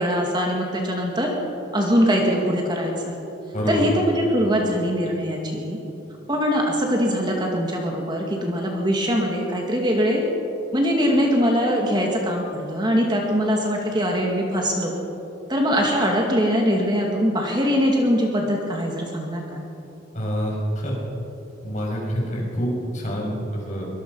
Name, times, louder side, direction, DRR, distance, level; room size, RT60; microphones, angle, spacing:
voice 1, 0.0-1.3 1.7-3.2 3.7-5.8 6.3-10.2 10.7-14.9 15.5-19.6, equal, 25° right, 0 dB, 2.3 m, -22 dB
voice 2, 3.5-3.8 20.1-21.0 21.6-23.9, equal, 40° left, -2 dB, 6.2 m, -26 dB
24.0 x 20.5 x 5.6 m, 2.9 s
head